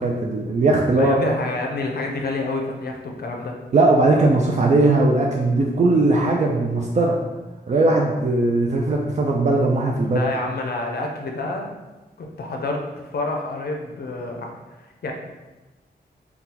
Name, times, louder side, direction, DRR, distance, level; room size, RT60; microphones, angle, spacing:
voice 1, 0.0-1.2 3.7-7.2 7.7-10.2, right 2 dB, 40° right, -1 dB, 0.4 m, -19 dB
voice 2, 0.9-3.6 10.0-11.7 12.4-14.5 15.0-15.1, left 2 dB, 65° left, 1 dB, 0.5 m, -28 dB
2.8 x 2.3 x 3.8 m, 1.1 s
cardioid pair, 80°, 18 cm